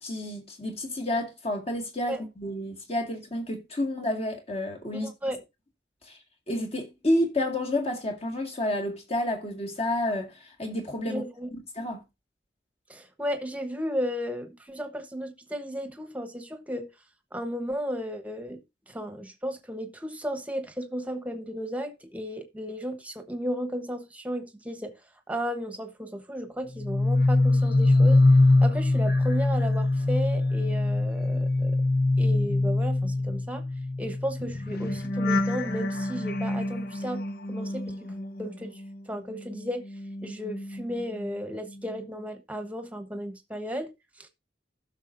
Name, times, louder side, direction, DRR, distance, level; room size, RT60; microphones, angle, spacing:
voice 1, 0.0-5.1 6.0-6.1 6.5-11.2 11.5-12.0, left 1 dB, 35° left, 2.1 m, -30 dB
voice 2, 4.9-5.4 11.0-11.5 12.9-16.9 17.3-24.9 25.3-28.2 28.6-31.8 32.2-33.6 34.0-37.9 38.4-38.8 39.1-39.8 40.2-43.9 44.2-44.3, equal, 10° right, 1.2 m, -34 dB
sound 1, 26.7-39.0 39.3-41.4 41.7-42.1, left 2 dB, 55° left, 0.8 m, -24 dB
15.5 x 6.4 x 2.7 m
head